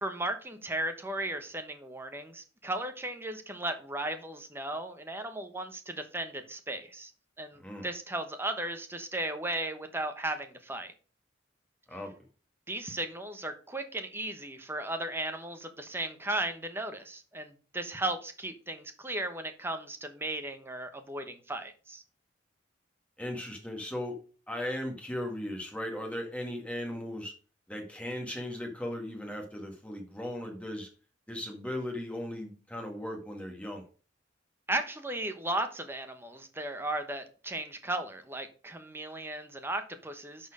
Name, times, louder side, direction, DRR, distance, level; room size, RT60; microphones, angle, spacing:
voice 1, 0.0-7.1 7.4-10.9 12.7-22.0 34.7-40.5, right 1 dB, 10° right, 1.0 m, -36 dB
voice 2, 23.2-24.2 24.5-27.3 27.7-30.9 31.3-33.8, left 1 dB, 5° left, 1.9 m, -37 dB
11.0 x 4.4 x 4.9 m
head